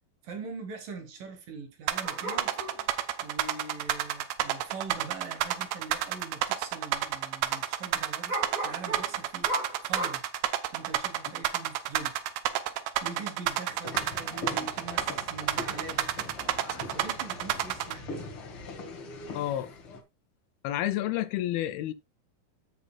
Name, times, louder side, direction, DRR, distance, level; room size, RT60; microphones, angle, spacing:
voice 1, 0.2-2.5 2.8-2.9 3.2-9.5 9.8-10.2 10.7-12.2 13.0-16.1 16.9-18.3, right 4 dB, 65° right, 3.2 m, -42 dB
sound 1, 1.9-17.9, right 12 dB, 85° right, 2.7 m, -29 dB
sound 2, 2.0-2.9 4.8-4.9 5.2-5.3 6.0-6.2 6.5-6.6 8.3-10.1, right 1 dB, 40° right, 1.1 m, -35 dB
sound 3, 13.8-20.0, left 3 dB, 45° left, 2.1 m, -41 dB
voice 2, 19.3-19.7 20.6-21.9, left 13 dB, 85° left, 2.7 m, -30 dB
15.5 x 5.4 x 2.3 m
omnidirectional pair, 4.3 m